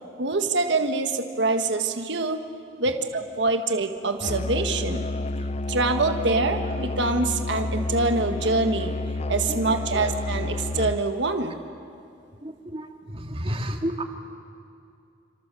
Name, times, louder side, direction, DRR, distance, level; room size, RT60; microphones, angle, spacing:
voice 1, 0.2-2.4 2.8-5.0 5.7-9.0 9.3-11.6, right 3 dB, 65° right, 6 dB, 1.6 m, -25 dB
Musical instrument, 4.2-11.1, left 2 dB, 35° left, 0.6 m, -30 dB
voice 2, 12.4-14.0, equal, 30° right, 4 dB, 2.2 m, -31 dB
29.0 x 26.5 x 7.7 m, 2.5 s
head